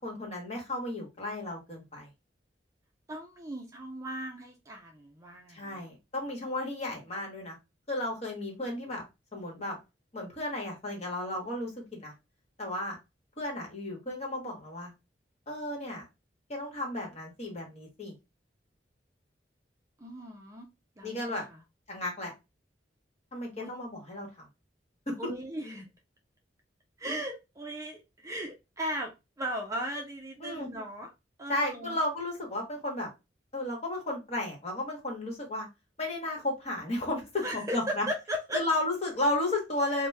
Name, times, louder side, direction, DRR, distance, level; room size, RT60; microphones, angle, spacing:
voice 1, 0.0-2.1 5.5-7.6 7.9-9.0 9.3-9.8 10.1-12.1 12.6-13.0 13.4-14.9 15.5-16.0 16.5-18.1 21.0-21.5 21.9-22.3 23.3-24.3 25.1-25.2 30.4-30.7 31.5-33.1 33.5-35.7 36.0-38.0 38.5-40.1, left 1 dB, 40° left, 0 dB, 1.2 m, -33 dB
voice 2, 3.1-5.9 20.0-20.7 21.0-21.6 23.6-23.7 25.2-25.9 27.0-31.1 31.4-32.0 37.4-38.7, equal, 20° right, 1 dB, 0.5 m, -37 dB
2.9 x 2.2 x 3.2 m, 0.24 s
head